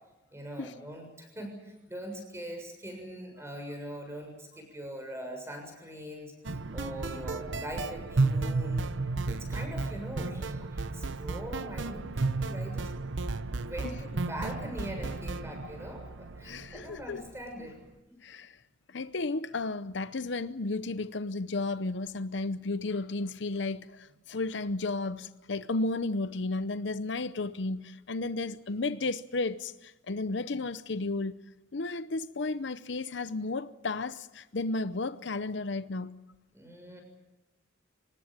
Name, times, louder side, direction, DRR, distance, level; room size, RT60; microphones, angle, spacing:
voice 1, 0.3-8.9 9.3-12.9 13.6-17.8 18.1-18.2 36.5-37.0, equal, 15° right, 6.8 m, -42 dB
sound 1, 6.4-17.4, right 3 dB, 75° right, 0.9 m, -33 dB
voice 2, 16.4-17.2 18.2-18.6 18.9-31.4 31.7-36.2, left 3 dB, 65° left, 0.7 m, -33 dB
25.0 x 19.5 x 8.9 m
head